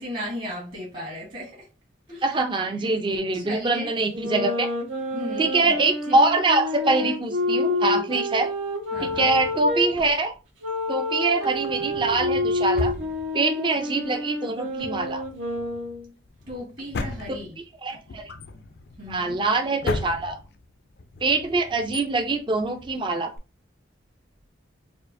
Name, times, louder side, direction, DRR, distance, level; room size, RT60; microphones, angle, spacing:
voice 1, 0.0-1.7 2.1-2.2 3.3-3.9 5.1-5.7 6.1-6.2 8.9-9.3 16.5-17.5 19.0-19.4, equal, 45° right, 1.4 m, -35 dB
voice 2, 2.2-4.7 5.4-8.5 9.0-10.3 10.9-12.9 13.3-15.2 17.8-18.3 19.1-20.4 21.2-23.3, right 3 dB, 25° right, 0.4 m, -24 dB
sound 1, 4.1-9.9 10.6-16.1, left 2 dB, 80° right, 1.1 m, -28 dB
Drawer open or close, 8.9-10.5 11.3-13.8 14.1-14.2 14.6-23.4, left 2 dB, 55° left, 0.4 m, -36 dB
4.3 x 2.5 x 2.6 m
head